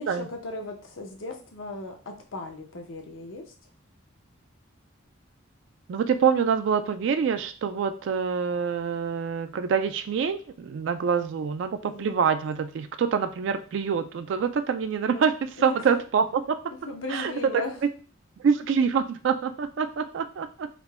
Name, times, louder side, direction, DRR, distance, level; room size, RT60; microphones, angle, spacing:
voice 1, 0.0-3.4 11.8-12.2 15.0-15.2 15.6-15.8 16.7-17.8, left 2 dB, 80° left, 3 dB, 0.8 m, -37 dB
voice 2, 5.9-16.6 17.1-17.9 18.4-20.7, right 6 dB, 65° right, 9 dB, 0.3 m, -26 dB
3.7 x 2.1 x 3.4 m, 0.38 s
head